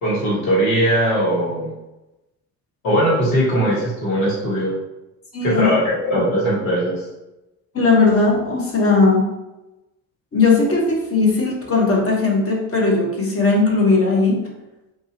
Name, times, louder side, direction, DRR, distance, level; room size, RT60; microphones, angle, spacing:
voice 1, 0.0-1.7 2.8-4.7 5.4-7.0, equal, 70° left, -7 dB, 1.4 m, -19 dB
voice 2, 5.3-5.7 7.7-9.3 10.3-14.4, left 3 dB, 30° left, -2 dB, 1.1 m, -17 dB
2.7 x 2.6 x 2.8 m, 0.97 s
figure-of-eight pair, 50°, 46 cm